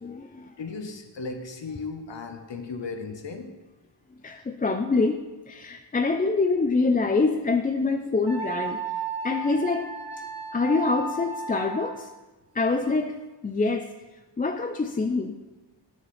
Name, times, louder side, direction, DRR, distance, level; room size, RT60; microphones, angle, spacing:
voice 1, 0.0-0.6 4.2-8.8 9.2-9.9 10.5-12.1 12.5-13.9 14.4-15.4, left 3 dB, 20° left, 6 dB, 0.3 m, -25 dB
voice 2, 0.6-3.5, left 4 dB, 75° left, 6 dB, 0.9 m, -36 dB
Wind instrument woodwind instrument, 8.3-12.1, right 3 dB, 50° right, 1.7 m, -34 dB
9.8 x 6.5 x 3.2 m, 1.2 s
wide cardioid pair, 60°, 44 cm